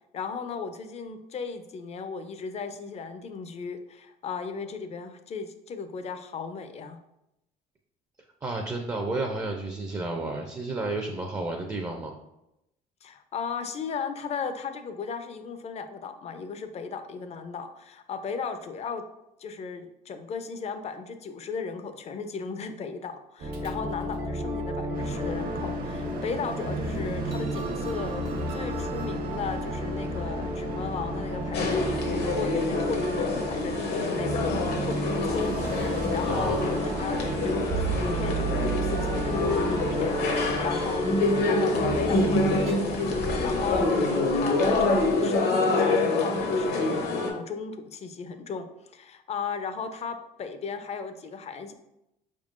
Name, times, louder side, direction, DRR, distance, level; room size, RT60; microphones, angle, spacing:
voice 1, 0.1-7.0 13.0-19.0 19.4-51.7, left 5 dB, 40° left, 9 dB, 0.5 m, -36 dB
voice 2, 8.4-12.1 36.3-36.6, right 2 dB, 20° right, 3 dB, 0.4 m, -31 dB
sound 1, 23.4-42.7, right 1 dB, 80° right, 1.0 m, -32 dB
sound 2, 24.9-44.3, right 1 dB, 55° right, 0.8 m, -38 dB
sound 3, 31.5-47.3, left 2 dB, 70° left, 0.9 m, -26 dB
4.8 x 3.6 x 2.5 m, 0.87 s
cardioid pair, 110°, 17 cm